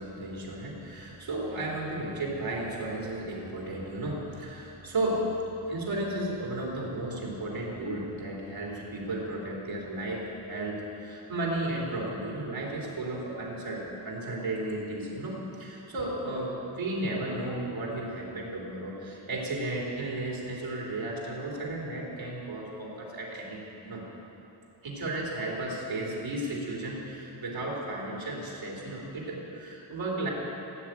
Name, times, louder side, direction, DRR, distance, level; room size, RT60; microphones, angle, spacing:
voice 1, 0.0-5.3 5.7-24.0 24.8-30.3, right 1 dB, 85° right, -4 dB, 3.5 m, -34 dB
16.5 x 7.9 x 9.1 m, 2.9 s
wide cardioid pair, 175°, 45 cm